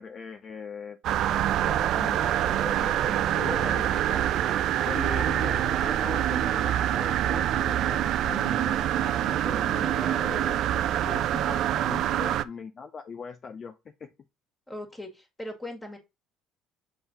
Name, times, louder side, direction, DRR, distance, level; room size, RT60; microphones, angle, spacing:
voice 1, 0.0-4.3 4.8-14.1, left 6 dB, 40° left, 0.5 m, -40 dB
sound 1, 1.0-12.4, right 11 dB, 65° right, 0.4 m, -25 dB
voice 2, 14.7-16.0, left 1 dB, 15° left, 1.9 m, -39 dB
7.0 x 3.8 x 4.0 m
cardioid pair, 100°, 0 cm